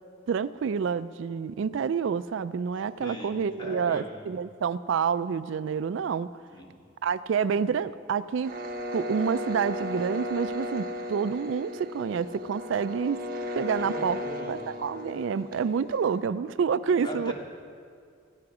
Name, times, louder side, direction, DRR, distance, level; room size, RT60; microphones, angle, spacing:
voice 1, 0.3-6.3 7.0-8.5 8.9-13.2 13.6-14.2 14.5-17.3, right 6 dB, 65° right, 15 dB, 0.3 m, -28 dB
voice 2, 3.0-4.1 6.5-6.7 13.8-14.6 17.0-17.3, right 1 dB, 25° left, -2 dB, 2.4 m, -39 dB
sound 1, 8.4-16.2, left 1 dB, 45° right, 1.3 m, -35 dB
15.5 x 14.5 x 4.9 m, 2.2 s
head